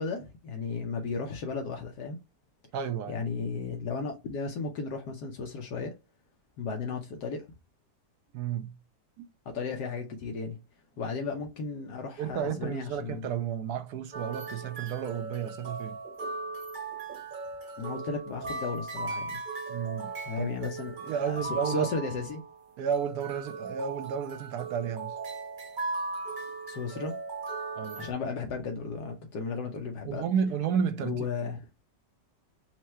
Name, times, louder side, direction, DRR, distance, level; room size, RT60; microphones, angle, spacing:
voice 1, 0.0-2.2 3.1-6.0 6.6-7.5 9.5-10.6 11.0-13.3 17.8-19.4 20.3-22.4 26.7-27.2 28.0-30.2 31.0-31.6, left 4 dB, 70° left, 1.3 m, -35 dB
voice 2, 2.7-3.3 8.3-8.8 9.2-9.3 12.2-16.0 19.7-20.7 21.0-21.9 22.8-25.2 27.8-28.0 30.0-31.5, right 7 dB, 70° right, 1.1 m, -32 dB
sound 1, 14.1-28.1, right 3 dB, 35° right, 0.9 m, -38 dB
4.5 x 2.1 x 4.2 m
omnidirectional pair, 1.9 m